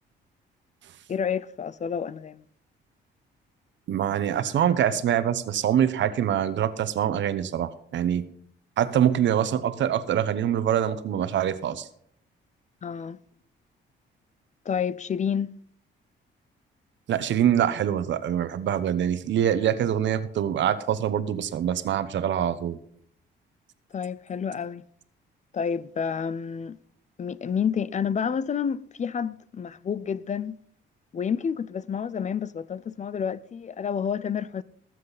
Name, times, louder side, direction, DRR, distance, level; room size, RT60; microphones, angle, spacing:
voice 1, 1.1-2.4 12.8-13.2 14.7-15.5 23.9-24.8 25.5-26.8 27.2-30.6 31.1-34.6, left 7 dB, 35° left, 0.5 m, -29 dB
voice 2, 3.9-8.2 8.8-11.9 17.1-22.8, right 10 dB, 70° right, 1.0 m, -24 dB
19.0 x 7.6 x 4.1 m
cardioid pair, 90°, 20 cm